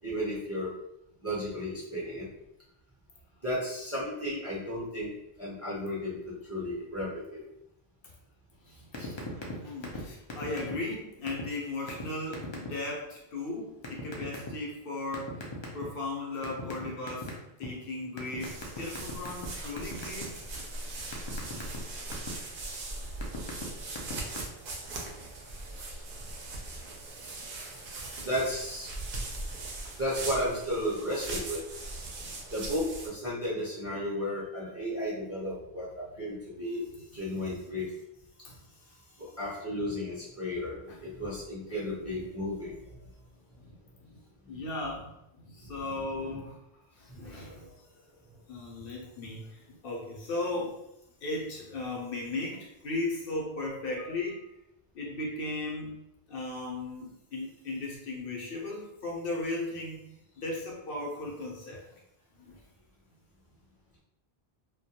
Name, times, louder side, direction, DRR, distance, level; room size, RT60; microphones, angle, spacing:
voice 1, 0.0-0.7 1.2-2.3 3.4-5.1 5.4-7.4 9.0-9.2 28.0-29.3 30.0-31.6 32.5-36.9 37.1-37.9 39.2-43.0 45.6-45.7 46.2-46.3 47.3-47.7, equal, 15° right, -7 dB, 0.6 m, -34 dB
sound 1, 8.9-9.5 9.8-10.0 10.3-10.9 11.3-11.4 11.9-12.0 12.3-12.7 13.8-14.5 15.1-16.0 16.4-17.7 18.2-19.5 19.8-20.2 20.6-22.3 22.9-23.6 23.9-24.4, left 4 dB, 45° left, 0.4 m, -38 dB
voice 2, 9.3-15.5 15.7-17.3 17.6-20.5 27.5-27.7 29.2-29.3 32.0-32.1 33.9-34.0 38.4-39.2 40.9-41.0 43.6-43.8 44.1-44.2 44.5-46.6 46.9-47.6 48.5-50.8 51.2-54.5 54.9-56.0 56.3-62.0 62.4-62.6, left 2 dB, 65° left, -2 dB, 0.8 m, -37 dB
sound 2, 18.4-33.1, right 2 dB, 65° right, 0.7 m, -40 dB
2.2 x 2.1 x 2.8 m, 0.83 s
omnidirectional pair, 1.0 m